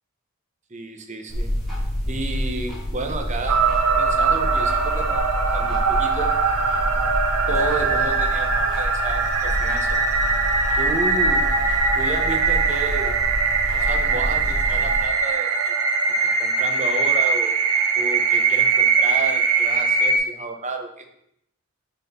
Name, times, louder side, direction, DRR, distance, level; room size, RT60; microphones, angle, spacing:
voice 1, 0.7-1.5 2.1-3.6 4.0-6.3 7.5-10.0 10.8-11.6 11.9-13.2 13.7-15.7 16.2-17.6 17.9-21.1, right 3 dB, 35° right, 5 dB, 0.8 m, -31 dB
sound 1, 1.3-15.1, equal, ahead, 2.1 m, -28 dB
sound 2, 3.5-20.2, right 4 dB, 90° right, 0.9 m, -21 dB
6.9 x 4.2 x 4.2 m, 0.74 s
head